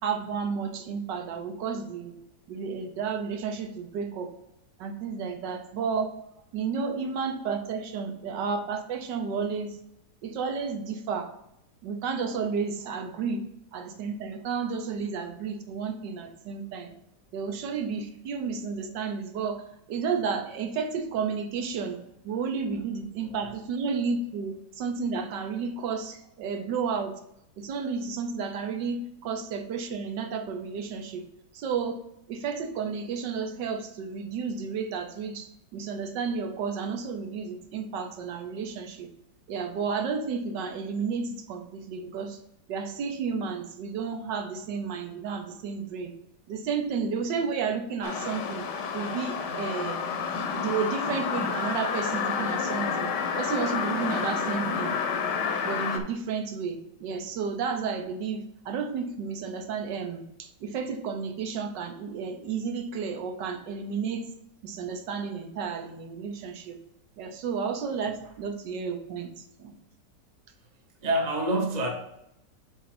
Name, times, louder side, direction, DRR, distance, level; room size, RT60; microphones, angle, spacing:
voice 1, 0.0-2.1 2.5-4.3 4.8-6.1 6.5-9.7 10.2-11.3 11.8-13.4 13.7-16.9 17.3-19.6 19.9-22.0 22.2-27.2 27.6-31.2 31.5-32.0 32.3-35.5 35.7-39.1 39.5-42.4 42.7-46.1 46.5-48.6 48.9-50.0 50.5-53.1 53.4-54.9 55.6-60.2 60.6-64.2 64.6-66.8 67.2-69.3 69.6-69.7, right 5 dB, 80° right, 5 dB, 1.5 m, -32 dB
sound 1, 48.0-56.0, left 6 dB, 75° left, 1.4 m, -30 dB
voice 2, 71.0-71.9, right 1 dB, 30° right, 1 dB, 0.8 m, -28 dB
7.6 x 2.7 x 5.9 m, 0.79 s
omnidirectional pair, 1.9 m